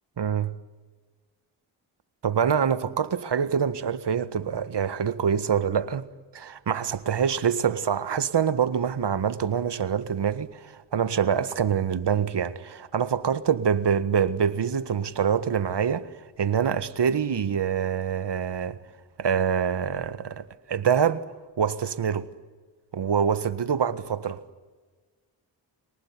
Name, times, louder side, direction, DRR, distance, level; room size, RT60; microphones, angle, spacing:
voice 1, 0.2-0.5 2.2-6.1 6.3-16.1 16.4-18.8 19.2-21.2 21.6-22.3 22.9-24.4, right 7 dB, 55° right, 1.7 m, -25 dB
27.5 x 19.5 x 9.8 m
supercardioid pair, 40°, 49 cm